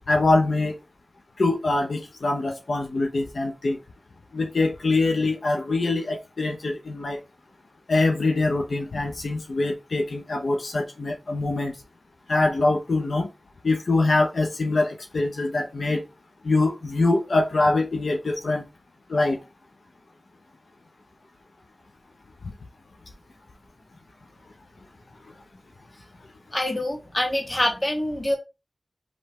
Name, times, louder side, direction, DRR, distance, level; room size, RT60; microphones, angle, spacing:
voice 1, 0.1-0.7 1.4-3.8 4.3-7.2 7.9-11.7 12.3-13.3 13.6-16.0 16.4-18.6 19.1-19.4, left 2 dB, 85° left, 0.7 m, -23 dB
voice 2, 26.5-28.3, left 1 dB, 30° left, 1.6 m, -25 dB
5.1 x 3.2 x 3.1 m
wide cardioid pair, 70°, 0 cm